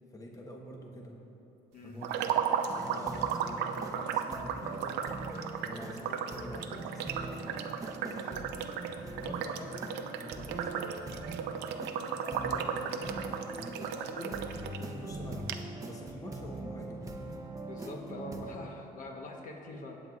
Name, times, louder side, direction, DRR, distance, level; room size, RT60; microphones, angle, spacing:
voice 1, 0.1-1.2 1.8-5.0 5.6-7.7 9.1-9.9 10.2-10.9 12.3-14.4 15.0-15.5 15.8-17.1, equal, 20° left, 0 dB, 1.0 m, -46 dB
sound 1, 2.0-14.8 15.1-15.2 15.5-15.6, right 7 dB, 85° right, 0.5 m, -35 dB
sound 2, 2.7-18.4, right 2 dB, 20° right, 0.8 m, -42 dB
voice 2, 8.0-8.4 14.8-15.0 17.6-20.0, left 1 dB, 50° left, 1 dB, 1.1 m, -44 dB
17.0 x 7.8 x 2.4 m, 2.9 s
cardioid pair, 110°, 17 cm